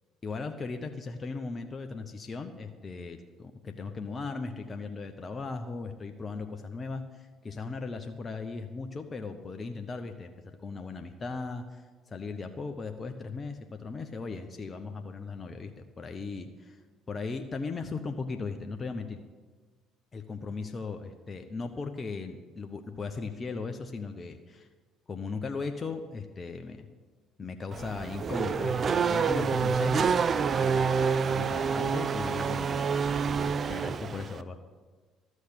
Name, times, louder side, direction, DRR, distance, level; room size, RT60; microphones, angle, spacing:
voice 1, 0.2-16.8 17.1-19.2 20.1-24.7 25.1-26.9 27.4-30.1 30.5-34.6, left 4 dB, 35° left, 6 dB, 0.9 m, -37 dB
Race car auto racing / Accelerating revving vroom, 27.7-34.4, right 6 dB, 45° right, 0.5 m, -27 dB
13.0 x 6.4 x 8.8 m, 1.4 s
hypercardioid pair, 55°, 0 cm